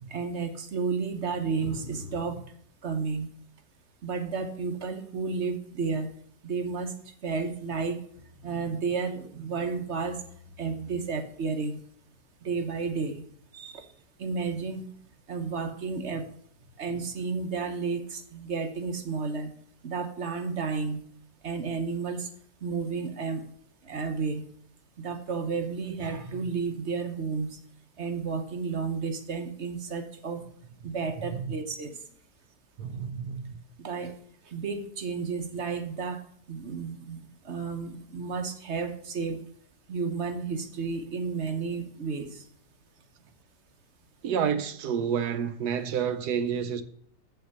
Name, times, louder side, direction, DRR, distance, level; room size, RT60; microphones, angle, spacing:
voice 1, 0.1-2.5 2.8-3.3 4.0-6.1 6.4-8.0 8.4-10.2 10.6-11.8 12.4-13.2 13.5-13.9 14.2-14.8 15.3-16.3 16.8-19.5 19.8-21.0 21.4-22.3 22.6-23.5 23.8-24.4 25.0-27.6 28.0-30.4 30.8-32.0 33.8-34.2 34.4-36.2 36.5-39.4 39.9-42.4, right 4 dB, 50° right, 0.9 m, -32 dB
voice 2, 32.8-33.6 44.2-46.8, right 7 dB, 70° right, 1.1 m, -29 dB
7.7 x 5.8 x 6.6 m
omnidirectional pair, 1.9 m